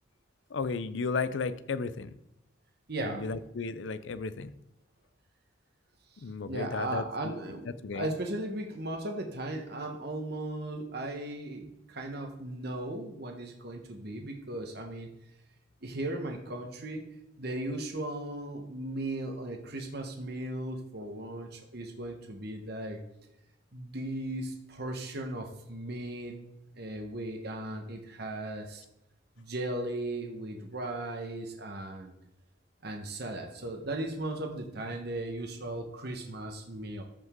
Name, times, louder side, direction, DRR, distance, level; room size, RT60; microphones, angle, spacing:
voice 1, 0.5-2.2 3.0-4.5 6.2-7.3 7.8-8.1, left 4 dB, 70° left, 13 dB, 0.5 m, -34 dB
voice 2, 2.9-3.3 6.2-7.7 7.9-15.1 15.8-17.0 17.4-23.0 23.7-26.4 26.8-28.8 29.4-32.1 32.8-37.0, right 1 dB, 55° right, 4 dB, 1.2 m, -37 dB
13.5 x 5.3 x 3.7 m, 0.85 s
head